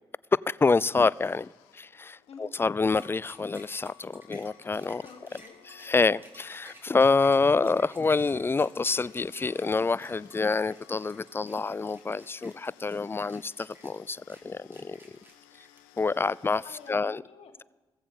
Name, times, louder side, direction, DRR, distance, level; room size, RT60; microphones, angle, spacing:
voice 1, 0.5-5.0 5.7-15.0 16.0-17.2, left 4 dB, 20° left, 22 dB, 0.3 m, -27 dB
sound 1, 0.6-16.9, left 12 dB, 80° left, 0.7 m, -59 dB
sound 2, 2.8-16.3, equal, 20° right, 3.3 m, -54 dB
voice 2, 4.9-5.6 16.6-17.6, left 6 dB, 55° left, 5 dB, 1.4 m, -49 dB
16.0 x 15.0 x 3.7 m, 1.2 s
hypercardioid pair, 40°, 12 cm